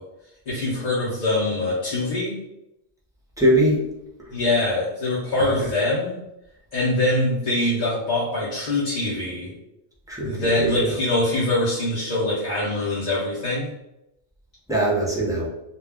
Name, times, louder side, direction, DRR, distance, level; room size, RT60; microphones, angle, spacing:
voice 1, 0.5-2.4 4.3-6.2 6.7-9.5 10.2-13.7, left 2 dB, 45° left, -8 dB, 0.7 m, -23 dB
voice 2, 3.4-3.8 5.4-5.5 10.1-11.0 14.7-15.5, right 1 dB, 5° right, -6 dB, 0.5 m, -21 dB
2.3 x 2.2 x 3.4 m, 0.88 s
omnidirectional pair, 1.1 m